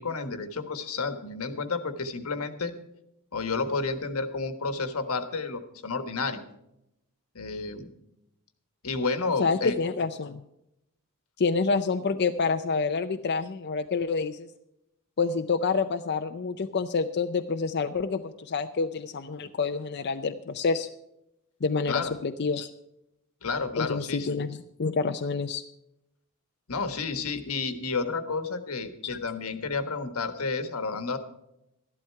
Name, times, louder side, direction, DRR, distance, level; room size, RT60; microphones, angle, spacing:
voice 1, 0.0-2.7 3.3-6.4 7.3-7.9 8.8-9.8 21.9-22.1 23.4-24.4 26.7-31.2, left 4 dB, 80° left, 8 dB, 1.4 m, -31 dB
voice 2, 9.4-10.4 11.4-14.5 15.2-20.9 21.6-22.7 23.8-25.6, left 4 dB, 50° left, 7 dB, 0.5 m, -28 dB
13.0 x 11.5 x 4.6 m, 0.84 s
head